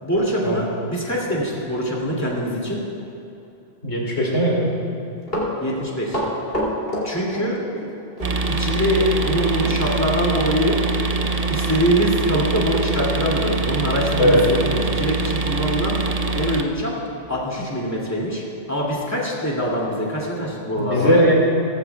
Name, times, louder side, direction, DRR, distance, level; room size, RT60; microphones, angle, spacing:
voice 1, 0.0-2.8 5.6-6.2 7.0-7.6 8.6-10.8 11.5-16.0 16.3-16.9 17.3-21.3, equal, 15° left, -4 dB, 2.5 m, -23 dB
voice 2, 3.8-4.8 14.2-14.4 20.8-21.3, equal, 80° left, -4 dB, 2.7 m, -18 dB
Run, 5.0-7.9 8.2-8.3 9.6-9.8 10.1-10.2 10.8-10.9 11.2-11.4 11.9-12.0, equal, 60° left, 3.1 m, -27 dB
sound 1, 8.2-16.6, right 3 dB, 40° right, 0.7 m, -23 dB
17.5 x 15.5 x 2.3 m, 3.0 s
omnidirectional pair, 1.1 m